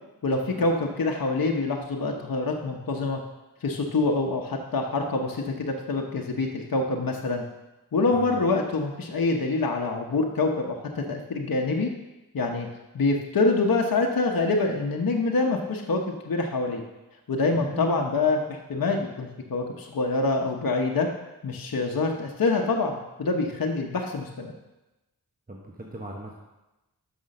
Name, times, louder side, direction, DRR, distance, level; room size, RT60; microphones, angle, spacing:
voice 1, 0.2-3.2 3.6-7.4 7.9-11.9 12.3-12.7 12.9-16.8 17.3-21.1 21.4-24.5, left 3 dB, 65° left, 1 dB, 1.0 m, -26 dB
voice 2, 17.6-18.1 25.5-26.3, right 1 dB, 25° right, -1 dB, 1.2 m, -38 dB
6.0 x 5.6 x 6.5 m, 1.0 s
cardioid pair, 45°, 36 cm